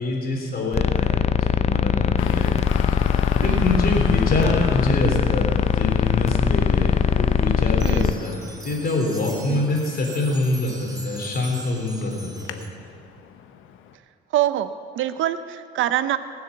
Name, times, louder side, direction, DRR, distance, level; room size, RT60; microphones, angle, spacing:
voice 1, 0.0-2.5 3.4-8.3 8.6-12.6, left 2 dB, 50° left, 0 dB, 3.6 m, -25 dB
sound 1, 0.7-8.1, left 7 dB, 35° left, 0.4 m, -21 dB
Traffic noise roadway noise, 2.2-13.9, left 8 dB, 90° left, 0.8 m, -38 dB
voice 2, 3.4-3.8 7.8-8.2 9.5-9.6 14.3-14.7 15.0-16.2, right 12 dB, 80° right, 12 dB, 0.7 m, -24 dB
Five Bar Chimes Samples, 7.7-12.7, right 2 dB, 20° right, 1.7 m, -42 dB
19.0 x 7.1 x 7.1 m, 2.3 s
cardioid pair, 90°, 20 cm